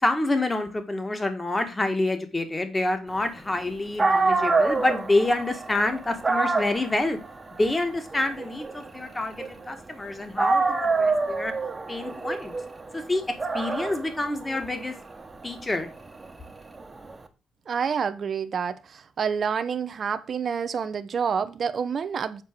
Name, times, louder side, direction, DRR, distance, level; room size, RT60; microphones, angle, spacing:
voice 1, 0.0-7.2 7.6-11.5 11.9-12.6 12.9-13.2 13.5-14.9 15.4-15.9, left 2 dB, 20° left, 1.8 m, -27 dB
Dog, 3.7-3.8 4.0-10.0 10.4-17.2, right 3 dB, 25° right, 1.2 m, -27 dB
voice 2, 17.7-22.4, right 6 dB, 50° right, 0.8 m, -28 dB
7.6 x 4.6 x 6.2 m
cardioid pair, 90°, 0 cm